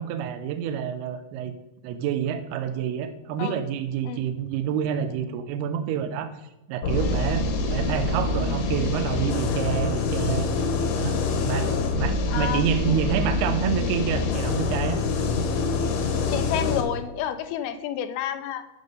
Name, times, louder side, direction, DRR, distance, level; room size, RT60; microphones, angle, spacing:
voice 1, 0.0-1.5 1.8-6.3 6.7-10.7 11.0-11.2 11.4-15.0, right 8 dB, 85° right, 8 dB, 2.7 m, -28 dB
sound 1, 6.8-16.8, left 3 dB, 70° left, 2.3 m, -25 dB
voice 2, 7.0-7.3 9.5-9.6 12.3-12.6 12.9-13.0 16.3-18.6, left 10 dB, 85° left, 9 dB, 2.5 m, -30 dB
9.8 x 6.4 x 5.4 m, 0.92 s
omnidirectional pair, 4.6 m